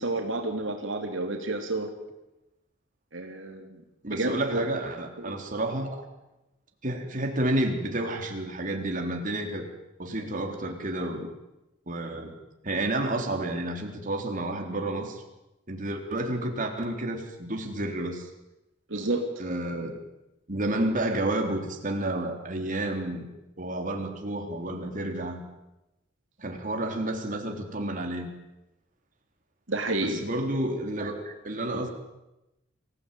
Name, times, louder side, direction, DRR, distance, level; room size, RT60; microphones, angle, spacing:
voice 1, 0.0-1.9 3.1-3.7 4.1-4.7 5.2-5.4 18.9-19.2 29.7-30.2, right 2 dB, 75° right, 3 dB, 3.0 m, -30 dB
voice 2, 4.0-6.0 6.8-9.7 10.0-11.3 11.9-12.3 12.6-15.2 15.7-18.3 19.4-20.0 20.5-23.2 23.6-25.4 26.4-28.3 30.0-31.9, right 1 dB, 45° right, 3 dB, 3.7 m, -30 dB
25.5 x 16.5 x 9.2 m, 0.95 s
head